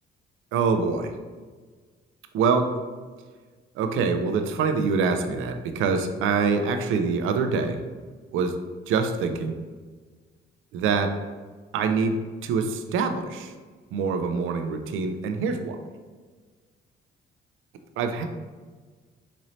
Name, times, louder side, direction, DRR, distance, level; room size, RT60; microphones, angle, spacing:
voice 1, 0.5-1.1 2.3-2.7 3.8-7.8 8.3-8.6 8.9-9.6 10.7-11.1 11.7-13.5 13.9-15.8 18.0-18.3, right 5 dB, 85° right, 7 dB, 0.4 m, -25 dB
4.0 x 2.6 x 3.1 m, 1.4 s
cardioid pair, 90°, 20 cm